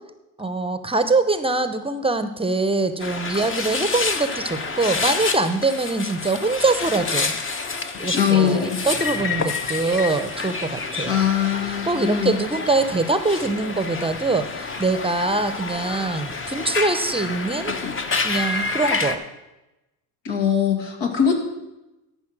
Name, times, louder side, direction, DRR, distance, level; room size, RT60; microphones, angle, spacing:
voice 1, 0.4-7.3 8.0-11.2 11.8-17.8 18.2-19.2, right 3 dB, 15° right, 11 dB, 0.8 m, -23 dB
sound 1, 3.0-19.2, left 4 dB, 30° left, 1.1 m, -28 dB
voice 2, 8.1-8.8 11.1-12.4 20.2-21.3, left 8 dB, 70° left, 2 dB, 2.4 m, -21 dB
13.0 x 5.7 x 6.1 m, 0.99 s
supercardioid pair, 75°, 44 cm